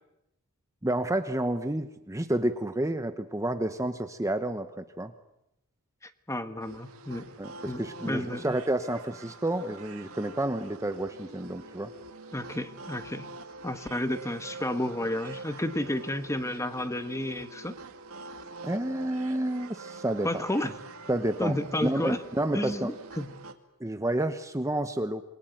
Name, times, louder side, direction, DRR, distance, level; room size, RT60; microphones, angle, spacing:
voice 1, 0.8-5.1 7.4-11.9 18.6-20.4 21.1-22.9 23.8-25.2, right 1 dB, 15° right, 9 dB, 1.0 m, -30 dB
voice 2, 6.0-7.3 7.7-8.6 12.3-13.3 13.6-17.8 20.2-20.7 21.4-22.2 22.5-23.3, left 1 dB, 15° left, 10 dB, 1.4 m, -31 dB
sound 1, 6.6-23.5, right 3 dB, 65° right, 2.3 m, -45 dB
27.0 x 22.0 x 9.2 m, 0.85 s
head